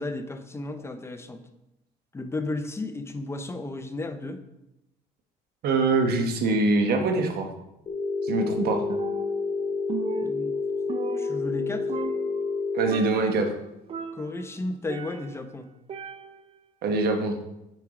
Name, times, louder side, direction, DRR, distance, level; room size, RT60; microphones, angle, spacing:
voice 1, 0.0-1.4 2.1-4.4 10.2-10.6 11.1-11.9 14.1-15.7, left 2 dB, 15° left, 8 dB, 0.7 m, -33 dB
voice 2, 5.6-7.5 8.2-8.8 12.7-13.5 16.8-17.4, right 3 dB, 70° right, 4 dB, 1.2 m, -23 dB
Telephone, 7.9-12.9, left 4 dB, 35° left, 1.2 m, -29 dB
Percussion, 8.9-9.6 9.9-11.6 11.9-12.6 12.9-13.4 13.9-15.5 15.9-16.6, right 7 dB, 35° right, 0.5 m, -37 dB
8.3 x 4.6 x 3.7 m, 0.89 s
cardioid pair, 110°, 17 cm